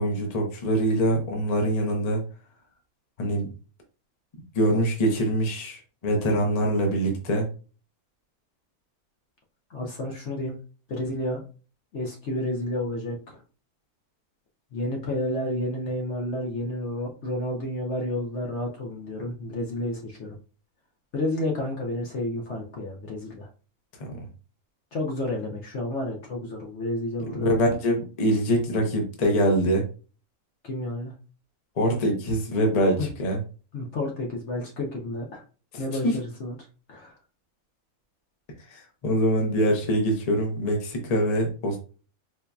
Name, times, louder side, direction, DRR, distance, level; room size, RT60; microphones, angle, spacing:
voice 1, 0.0-2.2 3.2-3.5 4.5-7.5 24.0-24.3 27.3-29.8 31.8-33.4 35.7-36.2 38.7-41.8, equal, 35° left, 2 dB, 0.8 m, -24 dB
voice 2, 9.7-10.6 10.9-11.4 11.9-13.4 14.7-20.3 21.1-23.5 24.9-27.6 30.6-31.1 33.0-33.1 33.7-35.4 35.8-36.6 36.9-37.2, left 1 dB, 55° left, 0 dB, 1.0 m, -30 dB
4.4 x 2.7 x 2.3 m, 0.36 s
omnidirectional pair, 1.6 m